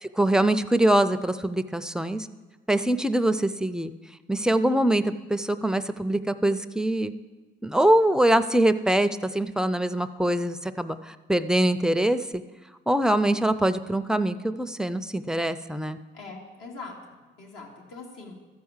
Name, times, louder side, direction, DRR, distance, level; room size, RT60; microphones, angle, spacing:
voice 1, 0.0-2.3 2.7-3.9 4.3-7.1 7.6-12.4 12.9-16.0, right 1 dB, 5° right, 11 dB, 0.4 m, -23 dB
voice 2, 16.1-18.4, left 3 dB, 75° left, -1 dB, 2.4 m, -42 dB
13.5 x 4.7 x 7.2 m, 1.2 s
cardioid pair, 90°, 20 cm